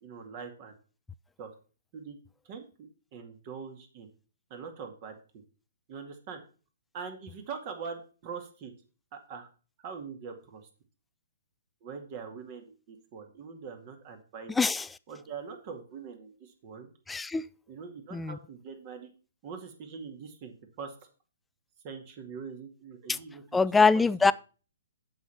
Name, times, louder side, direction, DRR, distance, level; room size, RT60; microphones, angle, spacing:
voice 1, 0.0-0.8 1.4-1.5 1.9-2.2 2.5-4.1 4.5-5.4 5.9-6.4 6.9-8.7 9.3-9.5 9.8-10.7 11.8-14.5 15.1-16.9 17.7-19.1 19.4-20.9 21.8-23.6 23.9-24.3, right 6 dB, 40° right, 2.1 m, -43 dB
voice 2, 17.1-17.4 18.1-18.4 23.5-24.3, left 4 dB, 10° left, 0.3 m, -23 dB
8.0 x 6.5 x 5.7 m
hypercardioid pair, 135°, 0 cm